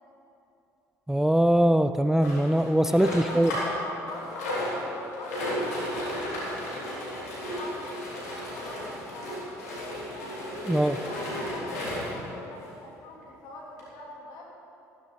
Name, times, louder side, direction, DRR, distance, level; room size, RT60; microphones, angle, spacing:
voice 1, 1.1-3.5 10.7-11.0, right 1 dB, 5° right, 11 dB, 0.4 m, -22 dB
sound 1, 2.2-3.8 4.1-12.2 12.9-13.0 13.2-13.3 13.8-13.9, left 1 dB, 90° left, 3.7 m, -33 dB
voice 2, 3.1-10.3 11.0-14.5, left 2 dB, 65° left, -3 dB, 3.5 m, -44 dB
15.0 x 14.5 x 4.1 m, 2.8 s
hypercardioid pair, 60°, 8 cm